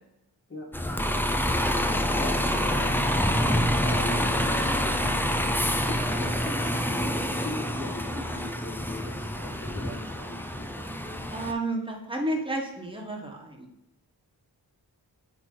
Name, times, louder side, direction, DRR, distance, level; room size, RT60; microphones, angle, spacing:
Bus, 0.7-11.5, equal, 5° left, 0.4 m, -27 dB
voice 1, 2.1-5.2 5.8-10.9, left 2 dB, 30° left, -1 dB, 1.4 m, -39 dB
voice 2, 11.3-13.7, right 1 dB, 10° right, 0 dB, 1.3 m, -32 dB
8.1 x 3.1 x 3.8 m, 0.84 s
wide cardioid pair, 70°, 43 cm